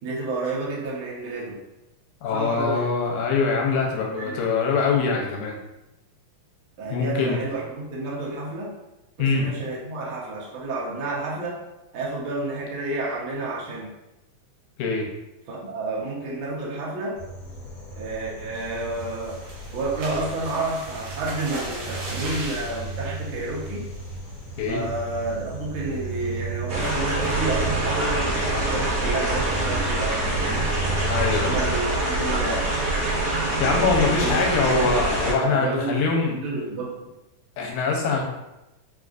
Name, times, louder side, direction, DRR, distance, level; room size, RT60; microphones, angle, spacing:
voice 1, 0.0-1.6 2.3-2.9 4.2-4.4 6.8-8.7 9.2-11.6 11.9-13.9 15.5-17.2 18.0-19.4 19.7-23.8 24.7-32.6 33.6-34.9 35.4-36.9, right 2 dB, 80° right, -4 dB, 1.1 m, -30 dB
voice 2, 2.2-5.6 6.9-7.4 9.2-9.5 14.8-15.1 24.6-24.8 31.1-31.6 33.6-36.4 37.6-38.2, left 4 dB, 80° left, -1 dB, 2.0 m, -23 dB
sound 1, 17.2-31.8, right 2 dB, 60° left, 1.7 m, -35 dB
sound 2, 18.5-24.3 24.7-25.0 25.3-25.4 25.8-26.1, right 1 dB, 65° right, 1.5 m, -38 dB
sound 3, 26.7-35.3, right 2 dB, 50° right, 2.0 m, -25 dB
4.7 x 2.4 x 2.4 m, 0.96 s
omnidirectional pair, 3.5 m